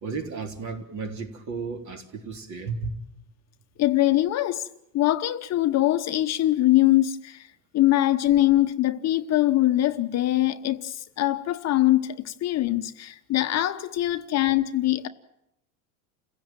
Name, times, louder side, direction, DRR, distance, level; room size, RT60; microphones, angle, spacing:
voice 1, 0.0-2.9, right 4 dB, 45° right, 3.6 m, -33 dB
voice 2, 3.8-4.7 4.9-15.1, left 15 dB, 40° left, 1.1 m, -23 dB
29.5 x 16.5 x 9.2 m
cardioid pair, 135°, 41 cm